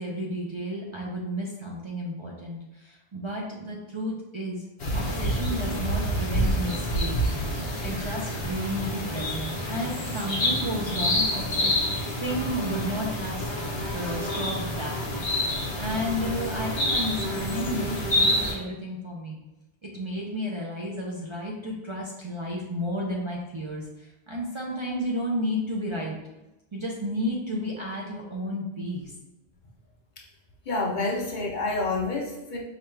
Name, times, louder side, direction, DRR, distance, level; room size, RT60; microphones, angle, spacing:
voice 1, 0.0-4.6 4.9-7.2 7.8-13.5 13.9-15.3 15.7-19.4 19.8-26.2 26.7-29.1, equal, 40° right, -3 dB, 0.5 m, -32 dB
sound 1, 4.8-18.5, equal, 70° left, 1.2 m, -28 dB
voice 2, 30.7-32.6, left 3 dB, 55° left, -1 dB, 0.7 m, -28 dB
4.9 x 2.3 x 3.2 m, 1.0 s
omnidirectional pair, 1.0 m